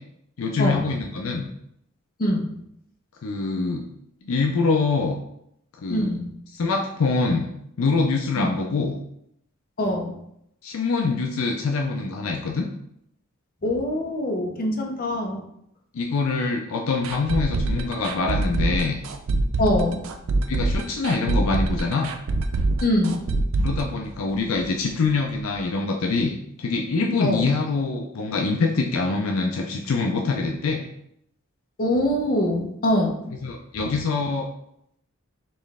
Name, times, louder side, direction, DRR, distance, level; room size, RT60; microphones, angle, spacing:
voice 1, 0.4-1.5 3.2-3.9 4.2-5.2 5.8-6.1 6.5-7.5 7.8-9.0 10.6-12.7 15.9-19.0 20.5-22.1 23.6-30.9 33.4-34.5, left 4 dB, 70° left, 1 dB, 0.5 m, -24 dB
voice 2, 5.9-6.3 8.4-8.5 9.8-10.2 13.6-15.4 19.6-20.0 22.8-23.2 27.2-27.4 31.8-33.3, left 1 dB, 45° left, 1 dB, 0.7 m, -23 dB
sound 1, 17.0-24.8 25.0-25.1 25.5-25.6, right 2 dB, 70° right, 0.4 m, -25 dB
4.3 x 3.1 x 3.5 m, 0.75 s
head